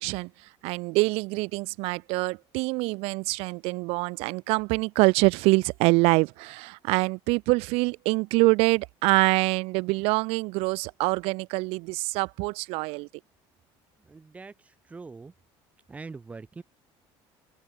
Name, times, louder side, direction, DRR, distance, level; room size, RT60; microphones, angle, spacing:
voice 1, 0.0-13.1, right 26 dB, 65° right, 0.8 m, -25 dB
voice 2, 14.0-15.3 15.9-16.6, right 4 dB, 10° right, 4.2 m, -43 dB
open air
cardioid pair, 175°, 11 cm